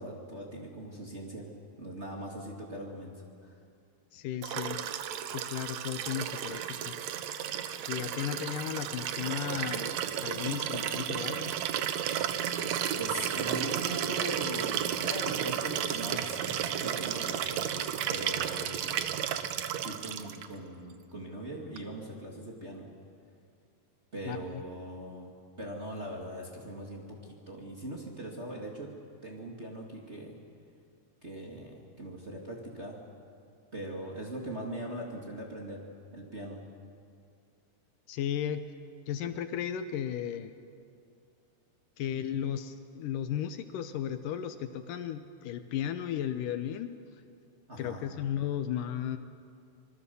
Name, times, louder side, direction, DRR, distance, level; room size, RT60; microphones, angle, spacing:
voice 1, 0.0-1.5 1.8-3.5 13.0-19.0 19.8-22.9 24.1-25.3 25.6-28.9 29.2-30.4 31.2-33.0 33.7-35.8 36.1-36.6 47.7-48.0, right 1 dB, 20° right, -2 dB, 2.1 m, -40 dB
voice 2, 4.1-4.8 5.3-6.9 7.9-9.9 10.2-11.5 24.3-24.6 38.1-38.6 39.1-40.5 42.0-46.9 47.8-49.2, left 10 dB, 75° left, 9 dB, 2.3 m, -35 dB
Liquid, 4.4-20.5 21.8-21.9, right 9 dB, 70° right, 1.8 m, -33 dB
26.5 x 21.5 x 7.0 m, 2.4 s
omnidirectional pair, 4.1 m